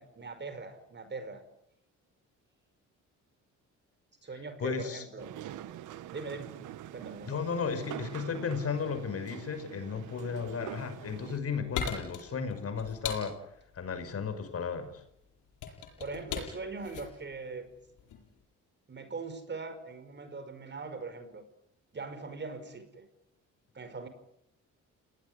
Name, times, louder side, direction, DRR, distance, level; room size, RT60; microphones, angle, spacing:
voice 1, 0.0-1.4 4.2-5.3 6.1-6.5 6.9-7.4 16.0-17.7 18.9-21.4 21.9-23.1 23.7-24.1, right 4 dB, 35° right, 10 dB, 5.5 m, -41 dB
voice 2, 4.6-5.0 7.3-13.4 13.7-14.9, left 6 dB, 50° left, 9 dB, 5.7 m, -34 dB
sound 1, 5.2-11.4, right 12 dB, 90° right, 1.5 m, -45 dB
sound 2, 11.1-18.3, left 7 dB, 80° left, 7.7 m, -40 dB
29.0 x 19.0 x 9.8 m, 0.76 s
cardioid pair, 90°, 30 cm